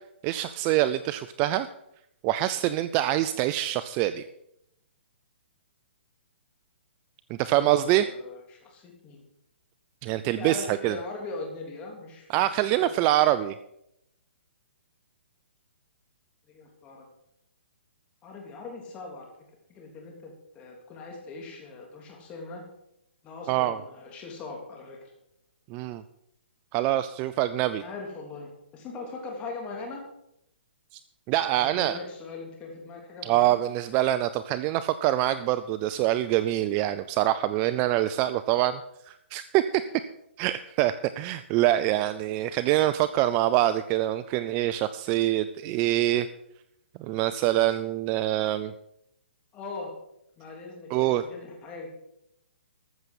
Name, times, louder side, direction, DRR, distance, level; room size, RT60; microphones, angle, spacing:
voice 1, 0.2-1.7 2.2-4.2 7.3-8.0 10.0-11.0 12.3-13.6 23.5-23.8 25.7-26.0 26.7-27.8 31.3-32.0 33.2-38.8 39.1-39.6 40.4-46.3 47.0-48.7 50.9-51.2, right 14 dB, 25° right, 13 dB, 0.4 m, -25 dB
voice 2, 7.5-9.2 10.3-12.9 16.5-17.1 18.2-19.3 19.7-22.6 23.2-25.1 27.8-30.0 31.5-33.6 40.8-40.9 49.5-49.9 50.4-52.0, left 3 dB, 20° left, 0 dB, 3.3 m, -40 dB
14.0 x 6.7 x 7.7 m, 0.79 s
hypercardioid pair, 155°, 6 cm